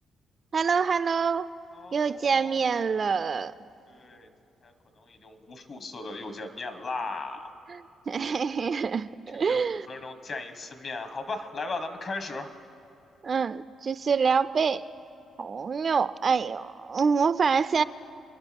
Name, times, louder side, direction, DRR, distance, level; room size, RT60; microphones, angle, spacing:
voice 1, 0.5-1.5 1.9-3.5 7.7-9.9 13.2-14.9 15.4-17.8, right 5 dB, 45° right, 13 dB, 0.4 m, -26 dB
voice 2, 1.7-2.6 2.9-3.0 3.9-4.3 4.6-7.5 9.3-12.5, left 3 dB, 50° left, 6 dB, 1.5 m, -37 dB
28.0 x 10.5 x 3.5 m, 2.9 s
cardioid pair, 85°, 0 cm